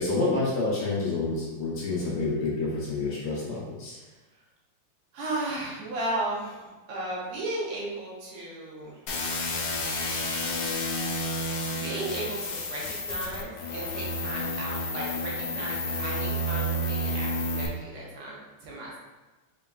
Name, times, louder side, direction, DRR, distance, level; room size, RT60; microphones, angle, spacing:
voice 1, 0.0-4.0, left 3 dB, 60° left, -6 dB, 1.6 m, -28 dB
voice 2, 4.0-4.4 5.1-9.0 11.7-19.0, right 2 dB, 90° right, -5 dB, 2.1 m, -35 dB
sound 1, 9.1-17.7, left 1 dB, 80° left, 0.8 m, -30 dB
4.7 x 3.6 x 2.3 m, 1.2 s
omnidirectional pair, 2.4 m